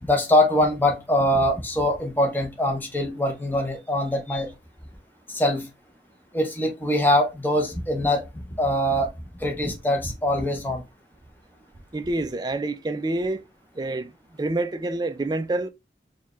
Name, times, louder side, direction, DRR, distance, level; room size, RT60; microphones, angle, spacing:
voice 1, 0.0-4.5 5.3-5.7 6.3-8.2 8.6-9.1 9.4-10.8, left 1 dB, 10° left, 0.8 m, -23 dB
voice 2, 11.9-13.5 13.8-14.1 14.4-15.7, right 2 dB, 25° right, 0.3 m, -27 dB
4.5 x 2.3 x 3.0 m
head